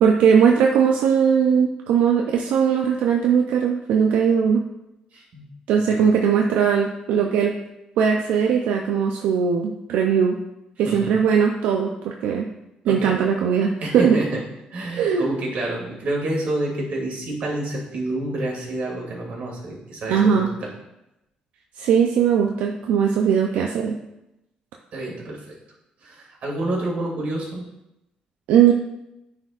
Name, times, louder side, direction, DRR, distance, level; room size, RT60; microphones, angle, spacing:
voice 1, 0.0-4.6 5.7-7.5 8.0-10.4 10.8-12.5 12.9-14.2 15.0-15.3 20.1-20.5 21.8-24.0 28.5-28.7, right 7 dB, 90° right, 1 dB, 0.5 m, -19 dB
voice 2, 5.1-5.4 5.9-6.1 10.8-11.1 12.9-13.2 13.8-14.4 14.7-20.7 24.9-25.6 26.0-27.6, right 1 dB, 60° right, -2 dB, 2.2 m, -28 dB
9.5 x 4.4 x 2.4 m, 0.90 s
cardioid pair, 100°, 3 cm